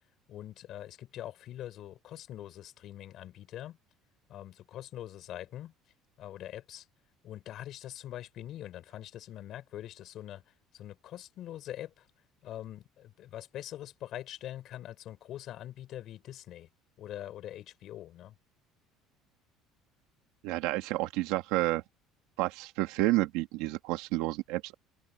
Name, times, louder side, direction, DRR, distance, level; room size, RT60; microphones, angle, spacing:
voice 1, 0.3-3.8 4.3-5.7 6.2-6.9 7.2-10.4 10.7-12.1 12.4-16.7 17.0-18.4, left 12 dB, 45° left, 5.5 m, -43 dB
voice 2, 20.4-21.8 22.4-24.7, right 18 dB, 85° right, 1.6 m, -30 dB
cardioid pair, 170°, 0 cm